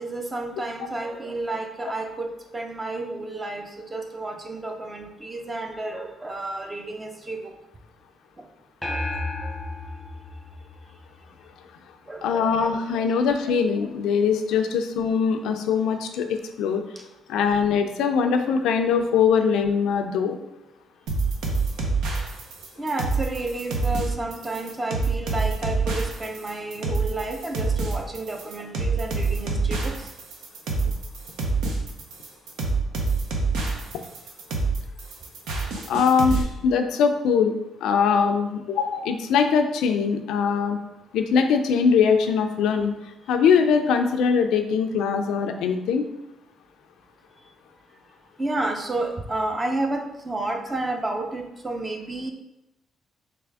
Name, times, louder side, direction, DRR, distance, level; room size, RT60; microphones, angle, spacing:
voice 1, 0.0-7.6 8.4-8.5 8.9-9.5 12.1-12.7 17.0-17.1 21.8-22.2 22.8-30.1 48.4-52.3, right 2 dB, 25° right, 3 dB, 0.6 m, -31 dB
sound 1, 8.8-11.5, left 2 dB, ahead, 0.9 m, -32 dB
voice 2, 12.2-16.8 17.3-20.4 35.9-37.5 37.8-40.8 41.1-43.0 43.3-46.1, left 6 dB, 85° left, 6 dB, 0.4 m, -22 dB
sound 2, 21.1-36.4, right 3 dB, 90° right, 0.7 m, -26 dB
3.4 x 3.4 x 3.4 m, 0.91 s
cardioid pair, 90°, 0 cm